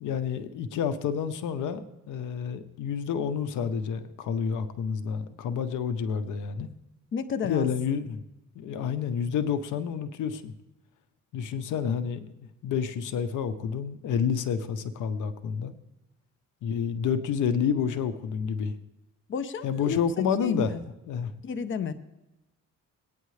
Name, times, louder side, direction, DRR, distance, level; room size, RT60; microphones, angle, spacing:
voice 1, 0.0-6.7 7.4-8.2 8.5-10.5 11.3-15.7 16.6-18.7 19.6-20.8 21.1-21.3, left 7 dB, 80° left, 11 dB, 0.9 m, -29 dB
voice 2, 7.1-7.7 19.3-20.8 21.4-21.9, left 6 dB, 40° left, 11 dB, 0.7 m, -32 dB
18.5 x 9.3 x 3.2 m, 0.95 s
cardioid pair, 90°, 30 cm